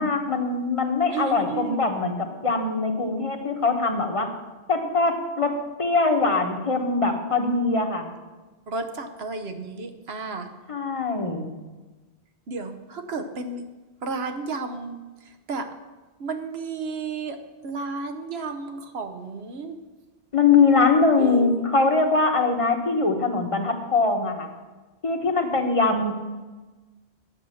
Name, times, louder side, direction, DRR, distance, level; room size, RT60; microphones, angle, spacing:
voice 1, 0.0-4.3 4.7-8.1 10.7-11.5 20.3-24.5 25.0-26.1, left 4 dB, 30° left, 4 dB, 1.1 m, -22 dB
voice 2, 1.1-1.9 8.7-10.5 12.5-13.6 14.0-15.0 15.5-15.7 16.2-17.4 17.6-19.8 21.2-21.5, right 4 dB, 75° right, 7 dB, 1.2 m, -32 dB
9.9 x 7.1 x 6.3 m, 1.2 s
omnidirectional pair, 1.1 m